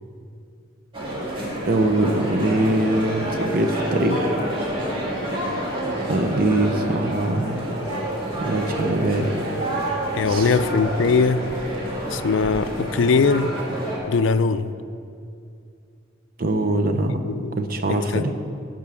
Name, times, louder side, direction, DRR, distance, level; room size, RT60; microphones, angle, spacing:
sound 1, 0.9-14.0, right 1 dB, 25° right, 2.0 m, -28 dB
voice 1, 1.6-4.3 6.0-7.6 8.4-9.4 10.2-10.6 16.4-18.3, right 1 dB, 45° right, 6 dB, 0.7 m, -23 dB
voice 2, 10.2-11.4 12.1-13.5 14.1-14.7 17.3-17.5 17.9-18.3, left 4 dB, 70° left, 12 dB, 0.4 m, -20 dB
11.0 x 5.4 x 7.0 m, 2.4 s
head